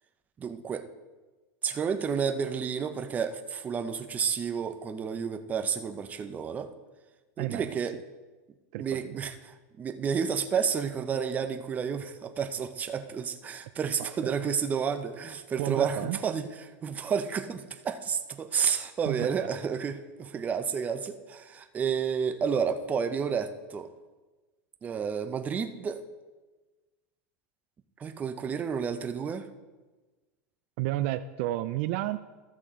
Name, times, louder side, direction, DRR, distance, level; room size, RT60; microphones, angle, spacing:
voice 1, 0.4-0.9 1.6-6.7 7.4-8.0 8.8-16.5 16.8-23.9 24.8-26.0 28.0-29.5, right 6 dB, 20° right, 8 dB, 0.6 m, -31 dB
voice 2, 7.4-8.0 8.7-9.2 14.0-14.4 15.6-16.2 19.1-19.5 30.8-32.2, right 15 dB, 55° right, 12 dB, 0.4 m, -32 dB
13.5 x 7.4 x 3.7 m, 1.2 s
supercardioid pair, 145°, 8 cm